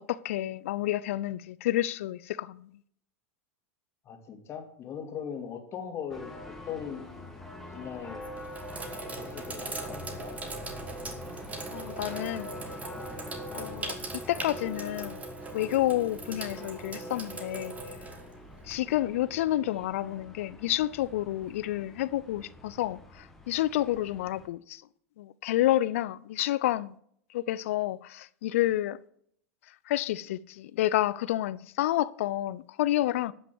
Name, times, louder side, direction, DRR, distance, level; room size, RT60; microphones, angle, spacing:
voice 1, 0.0-2.7 11.7-12.5 13.5-14.0 14.3-15.2 15.5-17.7 18.7-24.8 25.2-26.9 27.3-29.0 29.9-33.3, left 14 dB, 65° left, 0.5 m, -29 dB
voice 2, 4.0-7.0 7.7-8.2 9.2-10.4, left 7 dB, 35° left, 2.5 m, -39 dB
Bells in Elbląg, 6.1-24.5, left 1 dB, 5° left, 2.0 m, -45 dB
Sink (filling or washing), 7.1-7.5 8.1-19.0, right 3 dB, 20° right, 2.1 m, -40 dB
12.0 x 6.0 x 7.8 m
hypercardioid pair, 95°, 8 cm